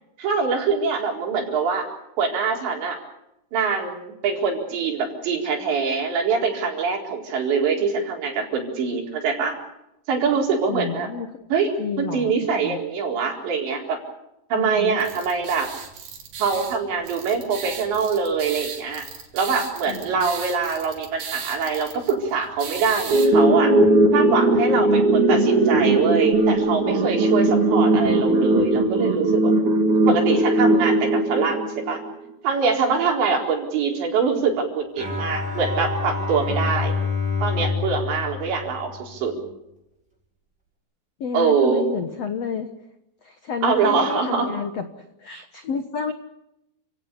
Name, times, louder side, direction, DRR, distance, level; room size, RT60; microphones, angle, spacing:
voice 1, 0.2-1.9 2.2-3.0 3.5-9.6 10.1-11.1 11.5-11.7 12.0-14.0 14.5-15.7 16.4-19.1 19.3-23.8 24.1-29.5 30.1-31.6 31.9-32.0 32.4-36.9 37.4-39.3 41.3-41.8 43.6-44.5, right 5 dB, 85° right, 1 dB, 6.6 m, -24 dB
voice 2, 10.7-11.3 11.8-12.8 14.5-15.0 19.9-20.0 41.2-42.7 43.2-44.9 45.2-46.1, left 6 dB, 75° left, 8 dB, 1.4 m, -30 dB
sound 1, 15.0-23.3, right 6 dB, 65° right, 5.1 m, -37 dB
sound 2, 23.1-32.1, right 2 dB, 50° right, 3.5 m, -19 dB
Bowed string instrument, 35.0-39.4, left 4 dB, 10° right, 6.8 m, -27 dB
30.0 x 17.0 x 8.5 m, 0.88 s
omnidirectional pair, 5.0 m